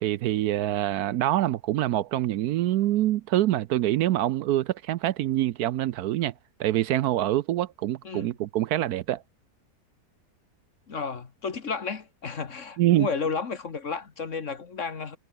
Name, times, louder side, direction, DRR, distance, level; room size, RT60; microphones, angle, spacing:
voice 1, 0.0-6.3 6.6-9.2 12.8-13.1, right 14 dB, 70° right, 1.0 m, -25 dB
voice 2, 10.9-15.2, left 5 dB, 45° left, 1.9 m, -32 dB
omnidirectional pair, 1.8 m